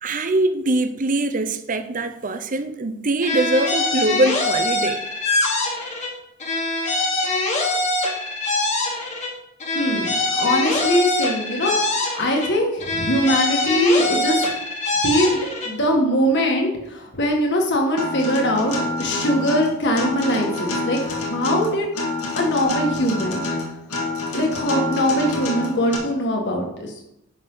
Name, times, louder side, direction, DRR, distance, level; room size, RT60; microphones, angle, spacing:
voice 1, 0.0-5.0, right 2 dB, 35° right, 9 dB, 0.7 m, -22 dB
sound 1, 3.2-6.1 6.4-9.3 9.6-12.5 12.8-15.7, left 2 dB, 35° left, 1.7 m, -23 dB
voice 2, 9.7-14.5 15.0-21.9 22.4-23.4 24.3-26.9, equal, 55° left, 1 dB, 2.0 m, -22 dB
Acoustic guitar, 18.0-26.0, left 2 dB, 85° left, 2.0 m, -27 dB
10.5 x 6.4 x 4.0 m, 0.86 s
head